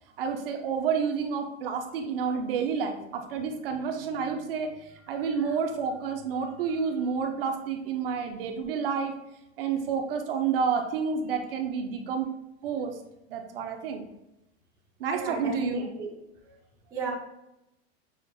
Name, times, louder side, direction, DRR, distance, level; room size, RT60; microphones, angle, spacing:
voice 1, 0.2-9.1 9.6-12.3 12.6-12.9 13.3-14.0 15.0-15.9, right 6 dB, 55° right, 5 dB, 0.6 m, -29 dB
voice 2, 15.1-16.1 16.9-17.1, right 4 dB, 10° right, -5 dB, 0.5 m, -34 dB
6.4 x 2.5 x 2.5 m, 0.88 s
supercardioid pair, 175°, 33 cm